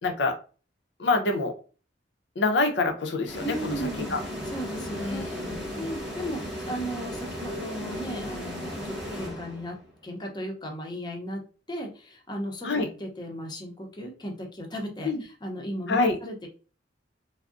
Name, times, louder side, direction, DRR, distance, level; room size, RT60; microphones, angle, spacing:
voice 1, 0.0-0.4 1.0-1.5 2.4-4.2 4.9-5.6 12.6-12.9 15.0-15.2 15.9-16.2, left 3 dB, 70° left, 4 dB, 0.6 m, -26 dB
sound 1, 3.3-9.9, equal, 5° right, 1.0 m, -35 dB
voice 2, 3.4-4.1 4.5-5.4 5.8-9.8 10.0-11.4 11.7-12.7 13.0-16.5, right 1 dB, 25° left, 1 dB, 0.6 m, -36 dB
3.5 x 2.0 x 2.4 m, 0.36 s
head